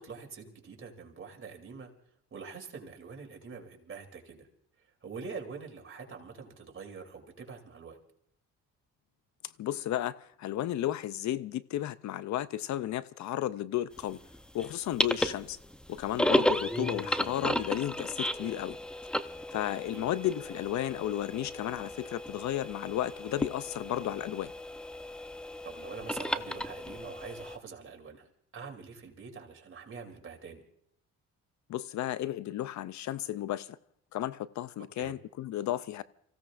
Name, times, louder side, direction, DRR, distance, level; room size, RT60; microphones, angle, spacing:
voice 1, 0.0-1.9 2.3-4.5 5.0-8.0 15.2-15.4 19.9-20.0 25.6-28.3 28.5-30.6 35.0-35.1, right 5 dB, 45° right, 3.1 m, -45 dB
voice 2, 9.6-14.2 14.5-15.6 15.9-18.8 19.5-24.5 31.7-33.8 34.1-36.0, left 12 dB, 70° left, 0.6 m, -33 dB
sound 1, 14.0-27.6, equal, 5° left, 0.6 m, -34 dB
29.5 x 16.0 x 2.5 m
cardioid pair, 90°, 30 cm